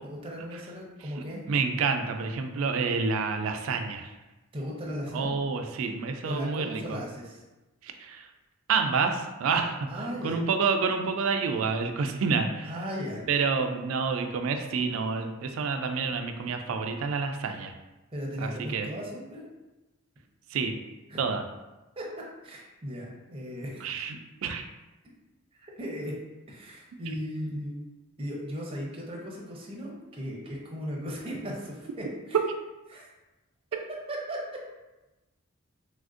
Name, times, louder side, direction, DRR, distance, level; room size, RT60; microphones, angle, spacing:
voice 1, 0.0-1.4 4.5-5.3 6.2-7.4 9.9-10.4 12.6-13.3 18.1-19.4 21.1-21.2 22.0-22.1 22.4-23.9 25.6-26.1 26.5-27.9 28.2-32.4 32.9-33.1 33.7-33.8 34.1-34.4, equal, 25° right, -3 dB, 0.6 m, -37 dB
voice 2, 1.5-4.1 5.1-7.0 7.8-8.3 8.7-9.9 10.2-12.7 13.3-17.7 18.4-18.9 20.5-20.7 21.2-21.4 23.8-24.6, right 5 dB, 75° right, 5 dB, 0.3 m, -28 dB
3.4 x 2.5 x 2.4 m, 1.1 s
head